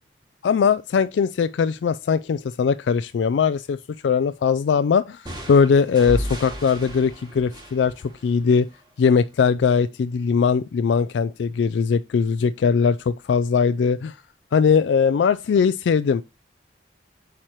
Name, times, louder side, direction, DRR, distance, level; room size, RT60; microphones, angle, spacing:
voice 1, 0.4-3.8 4.0-5.2 5.5-7.9 8.2-8.7 9.0-14.1 14.5-16.2, left 6 dB, 85° left, 0.3 m, -20 dB
sound 1, 5.3-8.9, equal, 25° right, 2.5 m, -34 dB
8.7 x 4.5 x 3.0 m
head